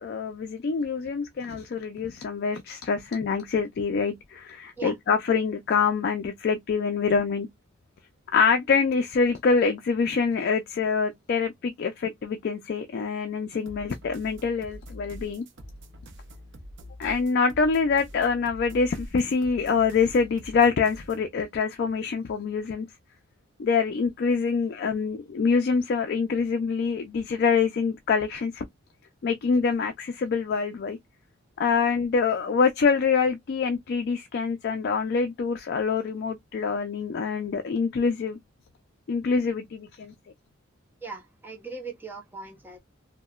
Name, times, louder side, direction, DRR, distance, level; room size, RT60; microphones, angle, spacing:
voice 1, 0.0-7.5 8.3-15.4 17.0-22.9 23.6-28.6 29.2-31.0 31.6-38.4 39.1-40.1, left 5 dB, 50° left, 0.3 m, -25 dB
sound 1, 13.6-21.3, equal, 60° right, 0.6 m, -45 dB
voice 2, 41.0-42.8, right 4 dB, 10° right, 0.6 m, -39 dB
2.8 x 2.1 x 2.3 m
head